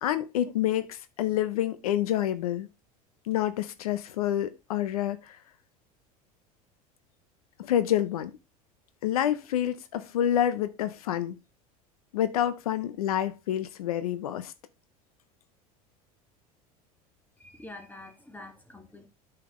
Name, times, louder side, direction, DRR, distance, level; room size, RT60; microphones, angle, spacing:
voice 1, 0.0-2.7 3.3-5.4 7.6-8.3 9.0-11.4 12.1-14.5, left 11 dB, 90° left, 0.7 m, -28 dB
voice 2, 17.4-19.1, left 2 dB, 10° left, 2.0 m, -46 dB
8.8 x 5.9 x 3.1 m
hypercardioid pair, 85°, 18 cm